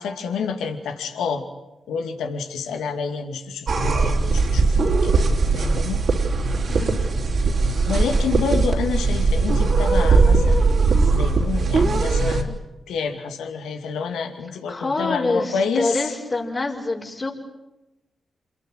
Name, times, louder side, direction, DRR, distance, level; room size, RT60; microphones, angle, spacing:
voice 1, 0.0-1.4 1.9-6.0 7.8-10.7 11.1-12.6 12.9-16.0, left 5 dB, 80° left, 6 dB, 2.5 m, -28 dB
sound 1, 3.7-12.4, right 3 dB, 65° right, 3.9 m, -19 dB
voice 2, 6.7-7.0 14.7-17.3, left 2 dB, 45° left, -3 dB, 5.5 m, -26 dB
28.0 x 21.5 x 9.5 m, 0.97 s
supercardioid pair, 40°, 0 cm